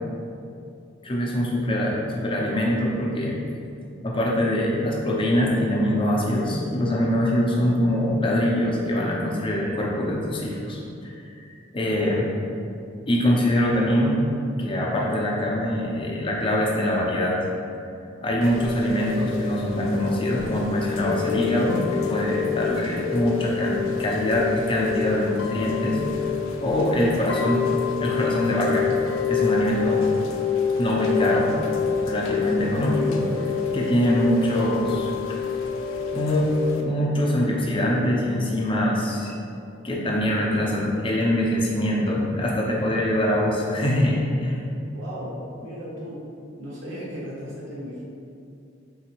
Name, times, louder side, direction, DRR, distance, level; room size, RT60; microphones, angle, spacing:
voice 1, 1.0-3.3 4.0-11.2 11.7-12.3 13.1-14.3 14.6-17.4 18.2-26.0 26.6-27.7 28.0-28.9 29.3-30.1 30.8-31.5 32.1-33.3 33.7-35.1 36.1-39.3 39.8-44.6, equal, 25° left, -3 dB, 0.6 m, -23 dB
Chime / Rain, 18.4-36.8, left 7 dB, 85° left, 0.4 m, -27 dB
voice 2, 44.9-46.3 46.6-48.0, equal, 70° right, -7 dB, 0.9 m, -36 dB
3.9 x 3.3 x 3.0 m, 2.6 s
head